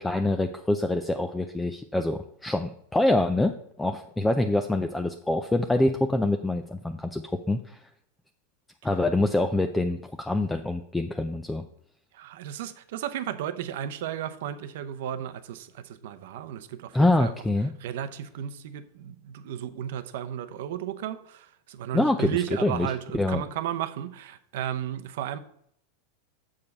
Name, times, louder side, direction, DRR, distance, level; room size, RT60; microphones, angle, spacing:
voice 1, 0.0-3.5 3.8-7.2 7.5-7.8 8.8-11.6 16.9-17.7 21.9-22.4 22.6-22.9 23.1-23.4, left 2 dB, 5° left, 0.4 m, -25 dB
voice 2, 12.1-17.3 17.8-25.4, right 10 dB, 70° right, 0.7 m, -34 dB
7.2 x 4.9 x 5.3 m
supercardioid pair, 130°, 0 cm